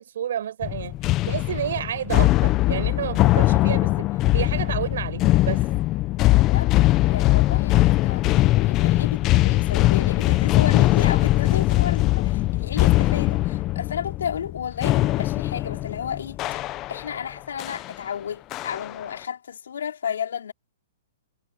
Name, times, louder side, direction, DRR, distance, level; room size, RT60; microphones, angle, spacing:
voice 1, 0.0-4.1 4.3-5.6, right 10 dB, 70° right, 5.4 m, -30 dB
sound 1, 0.6-17.2 17.6-17.9 18.5-19.0, left 17 dB, 25° left, 0.8 m, -21 dB
voice 2, 7.1-16.6 16.9-20.5, left 8 dB, 85° left, 4.0 m, -32 dB
hypercardioid pair, 155°, 0 cm